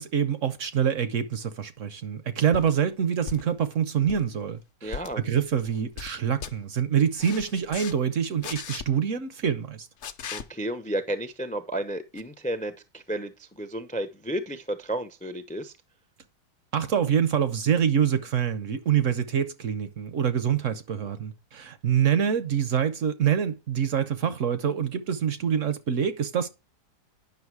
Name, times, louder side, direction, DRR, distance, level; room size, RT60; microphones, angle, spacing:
voice 1, 0.0-9.9 16.7-26.5, right 8 dB, 60° right, 0.9 m, -26 dB
sound 1, 2.5-2.7 3.3-3.6 4.0-4.3 4.9-5.1 5.6-6.1 6.4-6.5 7.2-7.9 8.4-8.8 10.0-10.4 12.2-12.3, left 7 dB, 55° left, 0.9 m, -37 dB
voice 2, 4.8-5.2 10.3-15.7, right 1 dB, 10° left, 0.3 m, -32 dB
9.6 x 6.0 x 4.7 m
omnidirectional pair, 1.8 m